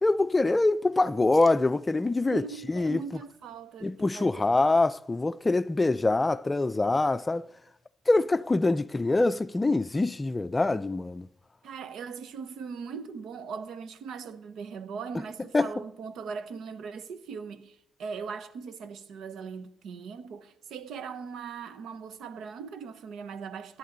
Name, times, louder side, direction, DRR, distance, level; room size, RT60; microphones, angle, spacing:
voice 1, 0.0-3.0 3.8-7.5 8.1-11.3 15.5-15.7, left 2 dB, 20° left, 0.5 m, -24 dB
voice 2, 2.3-4.3 11.6-23.8, right 6 dB, 75° right, 1.1 m, -40 dB
18.0 x 11.5 x 4.0 m
cardioid pair, 90°, 0 cm